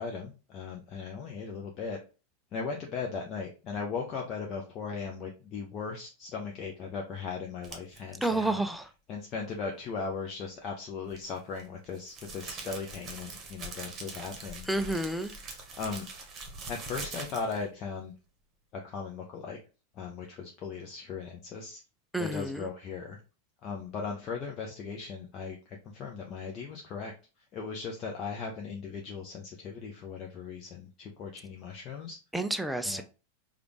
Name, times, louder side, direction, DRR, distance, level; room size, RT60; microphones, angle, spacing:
voice 1, 0.0-2.0 2.5-8.6 9.1-14.7 15.8-16.1 16.7-18.1 18.7-19.6 19.9-21.8 22.2-23.2 23.6-27.1 27.5-32.2 32.8-33.0, left 5 dB, 35° left, 1 dB, 0.7 m, -38 dB
sound 1, 7.6-8.0 11.1-17.7, right 3 dB, 25° right, 1.1 m, -43 dB
voice 2, 8.2-8.8 14.7-15.3 22.1-22.6 32.3-33.0, right 1 dB, ahead, 8 dB, 0.4 m, -30 dB
5.0 x 2.5 x 3.0 m, 0.32 s
figure-of-eight pair, 90°, 0 cm